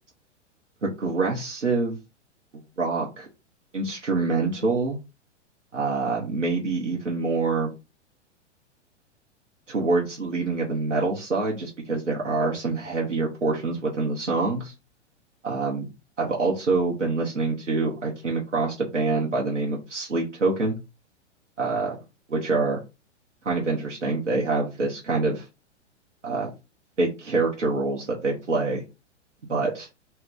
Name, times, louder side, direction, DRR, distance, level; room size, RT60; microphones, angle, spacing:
voice 1, 0.8-2.0 2.8-3.3 3.7-5.0 5.7-7.7 9.7-14.7 15.4-15.9 16.2-20.8 21.6-22.0 22.3-22.8 23.4-25.5 26.2-26.5 27.0-28.8 29.5-29.9, right 3 dB, 85° right, -2 dB, 0.8 m, -26 dB
2.5 x 2.2 x 3.5 m, 0.27 s
figure-of-eight pair, 105°, 36 cm